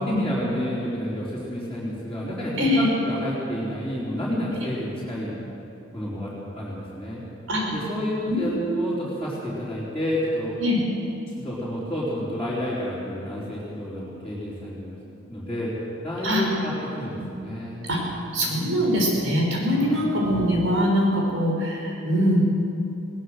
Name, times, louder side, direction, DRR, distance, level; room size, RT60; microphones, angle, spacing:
voice 1, 0.0-5.4 5.9-7.2 7.6-10.6 11.4-15.0 15.3-15.7 16.0-17.9 18.5-19.0 19.7-20.0, equal, 5° left, -12 dB, 4.2 m, -30 dB
voice 2, 8.3-8.8 10.6-10.8 16.2-16.4 17.2-17.3 17.9-18.0 18.3-22.4, equal, 80° right, -1 dB, 6.1 m, -23 dB
21.0 x 18.5 x 6.6 m, 2.8 s
head